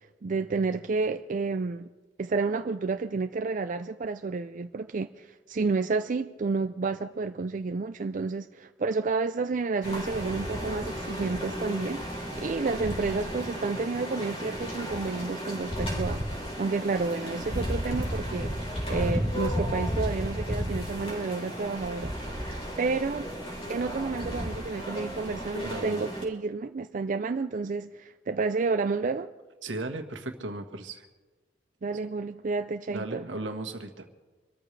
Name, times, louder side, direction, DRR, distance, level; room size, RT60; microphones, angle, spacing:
voice 1, 0.2-1.9 2.2-18.5 18.9-23.3 23.7-29.3 31.8-33.3, right 4 dB, 45° right, 0.4 m, -30 dB
sound 1, 9.8-26.2, equal, 35° left, 3.8 m, -33 dB
voice 2, 25.6-26.0 29.6-31.0 32.9-34.2, right 2 dB, 80° right, 1.5 m, -36 dB
26.0 x 13.5 x 3.3 m
head